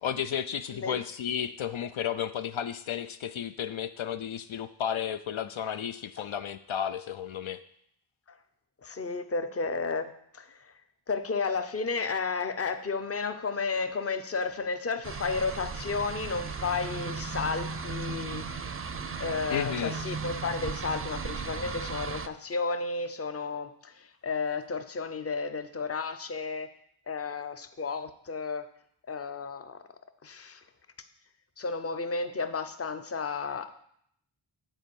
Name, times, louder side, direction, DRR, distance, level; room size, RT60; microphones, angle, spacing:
voice 1, 0.0-7.6 19.5-19.9, left 9 dB, 75° left, 11 dB, 0.5 m, -33 dB
voice 2, 8.8-10.7 11.1-18.5 19.2-26.7 27.1-28.6 29.1-29.8 30.2-30.6 31.6-33.8, left 4 dB, 30° left, 9 dB, 0.6 m, -32 dB
sound 1, 15.0-22.3, right 5 dB, 30° right, 0.4 m, -36 dB
9.1 x 4.4 x 7.1 m, 0.70 s
wide cardioid pair, 105°, 49 cm